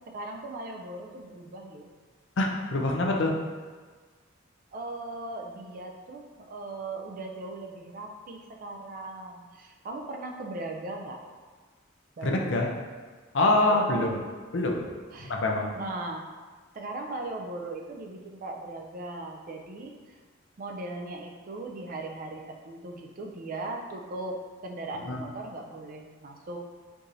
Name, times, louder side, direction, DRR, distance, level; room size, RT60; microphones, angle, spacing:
voice 1, 0.1-1.9 4.7-11.2 12.2-12.7 13.7-14.2 15.1-15.3 15.7-16.3 16.7-20.2 20.6-26.6, right 2 dB, 45° right, 2 dB, 0.4 m, -38 dB
voice 2, 2.4-3.3 12.2-12.7 13.3-14.2 14.5-14.9 15.2-15.7 25.1-25.2, left 2 dB, 65° left, 1 dB, 0.5 m, -25 dB
4.6 x 2.7 x 2.5 m, 1.5 s
head